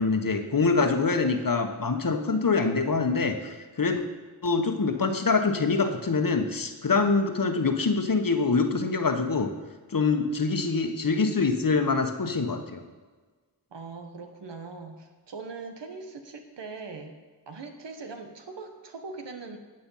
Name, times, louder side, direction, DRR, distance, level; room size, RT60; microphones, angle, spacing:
voice 1, 0.0-4.1 4.4-9.5 9.9-12.8, left 4 dB, 50° left, 6 dB, 1.3 m, -25 dB
voice 2, 13.7-17.1 17.5-19.6, right 4 dB, 80° right, 5 dB, 1.2 m, -41 dB
12.0 x 7.7 x 5.6 m, 1.4 s
cardioid pair, 45°, 42 cm